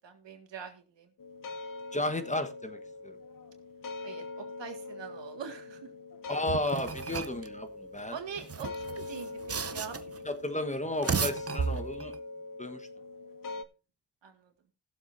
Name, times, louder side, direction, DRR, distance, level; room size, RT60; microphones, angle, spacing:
voice 1, 0.0-1.1 4.0-5.8 8.1-10.2 13.5-13.6 14.2-14.5, right 7 dB, 85° right, 5 dB, 2.0 m, -43 dB
sound 1, 1.2-13.6, left 3 dB, 50° left, 0.9 m, -42 dB
voice 2, 1.9-2.8 3.0-3.1 6.3-8.2 10.2-12.1 12.6-12.9, left 1 dB, 15° left, 8 dB, 1.2 m, -33 dB
sound 2, 6.5-7.5 8.4-10.2 10.8-12.2, right 6 dB, 35° right, 0.8 m, -34 dB
19.5 x 7.3 x 2.6 m, 0.31 s
cardioid pair, 70°, 43 cm